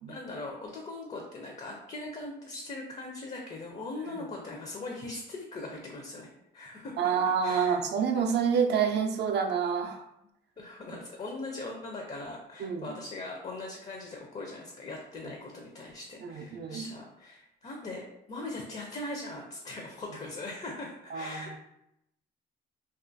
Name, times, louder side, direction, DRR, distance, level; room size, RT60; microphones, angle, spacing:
voice 1, 0.1-7.0 7.4-7.8 10.6-21.6, left 2 dB, 35° left, 1 dB, 0.4 m, -40 dB
voice 2, 7.0-10.0 12.6-12.9 16.2-16.9 21.1-21.6, right 6 dB, 60° right, 5 dB, 0.4 m, -28 dB
2.4 x 2.3 x 2.5 m, 0.82 s
cardioid pair, 90°, 20 cm